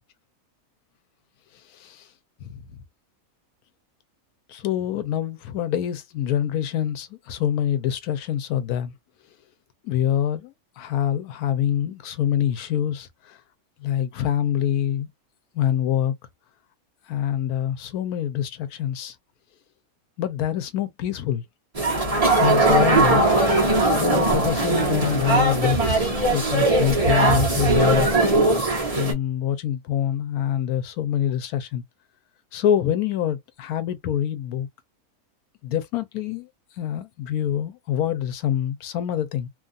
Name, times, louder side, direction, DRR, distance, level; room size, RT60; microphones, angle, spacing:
voice 1, 1.7-2.1 2.4-2.8 4.5-8.9 9.8-13.4 13.8-15.1 15.5-16.1 17.1-19.2 20.2-21.4 22.4-23.3 23.9-28.1 28.9-31.8 32.5-34.7 35.6-36.5 36.8-39.5, left 10 dB, 90° left, 1.1 m, -25 dB
sound 1, 21.7-29.1, right 2 dB, 30° right, 1.0 m, -20 dB
2.9 x 2.4 x 2.5 m
omnidirectional pair, 1.5 m